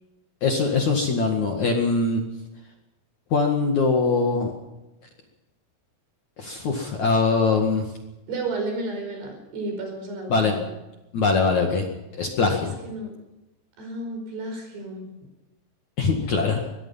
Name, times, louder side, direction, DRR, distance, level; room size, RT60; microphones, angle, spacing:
voice 1, 0.4-2.2 3.3-4.5 6.4-7.8 10.3-10.6 11.1-11.9 12.1-12.7 16.0-16.6, left 4 dB, 50° left, 2 dB, 2.7 m, -22 dB
voice 2, 8.3-10.7 12.8-13.1 13.8-15.1, right 2 dB, 60° right, 3 dB, 7.0 m, -32 dB
23.5 x 19.5 x 5.7 m, 0.98 s
omnidirectional pair, 5.3 m